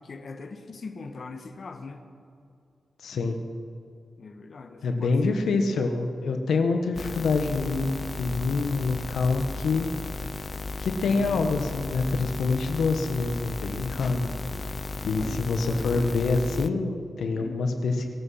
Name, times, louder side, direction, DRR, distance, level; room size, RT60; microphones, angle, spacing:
voice 1, 0.0-2.0 4.2-5.4 11.1-11.7 14.9-16.2 17.4-17.7, left 4 dB, 50° left, 5 dB, 1.2 m, -41 dB
voice 2, 3.0-3.4 4.8-9.9 10.8-14.3 15.0-18.2, left 3 dB, 85° left, 5 dB, 1.2 m, -26 dB
sound 1, 6.9-16.7, left 3 dB, 35° left, 0.5 m, -35 dB
23.0 x 8.5 x 5.7 m, 2.4 s
cardioid pair, 100°, 0 cm